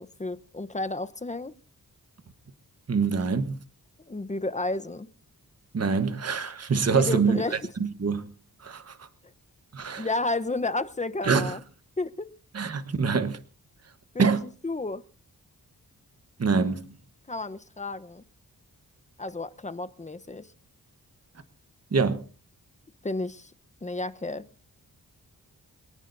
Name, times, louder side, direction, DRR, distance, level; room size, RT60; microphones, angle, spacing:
voice 1, 0.0-1.5 4.1-5.1 6.9-7.6 10.0-11.6 12.0-12.3 14.1-15.0 17.3-18.2 19.2-20.5 23.0-23.5 23.8-24.4, left 2 dB, 20° left, 0.9 m, -32 dB
voice 2, 2.9-3.6 5.7-7.4 7.8-8.2 8.6-9.1 9.7-10.1 11.2-11.6 12.5-13.4 14.2-14.4 16.4-16.9 21.9-22.2, right 5 dB, 45° right, 1.2 m, -25 dB
25.0 x 18.5 x 2.7 m
cardioid pair, 75°, 35 cm